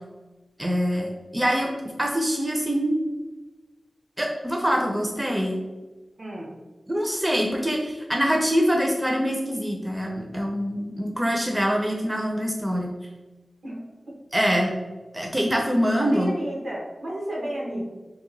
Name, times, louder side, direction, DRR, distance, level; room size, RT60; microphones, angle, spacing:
voice 1, 0.6-3.0 4.2-5.6 6.9-12.9 14.3-14.7 15.1-16.3, equal, 15° right, 0 dB, 0.4 m, -24 dB
voice 2, 6.2-6.6 13.6-14.1 16.0-17.9, right 1 dB, 75° right, -3 dB, 1.0 m, -33 dB
2.8 x 2.2 x 3.8 m, 1.2 s
wide cardioid pair, 85°, 0 cm